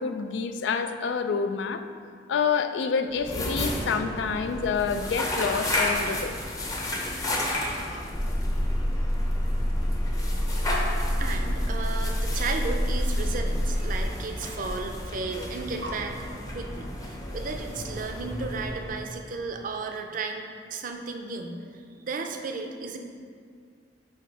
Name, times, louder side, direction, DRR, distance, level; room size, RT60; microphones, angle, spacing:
voice 1, 0.0-1.8 2.3-6.3 7.9-8.1 10.3-10.4, left 5 dB, 85° left, 9 dB, 0.4 m, -28 dB
sound 1, 3.1-19.2, left 1 dB, 20° left, 0.7 m, -33 dB
sound 2, 8.1-14.0, equal, 55° left, 1.4 m, -27 dB
voice 2, 11.2-16.2 16.5-23.0, right 4 dB, 50° right, 4 dB, 0.5 m, -34 dB
sound 3, 11.7-12.2 13.3-13.4 14.4-14.5 14.7-16.0, equal, 80° right, 0.8 m, -43 dB
8.0 x 2.8 x 4.6 m, 2.2 s
head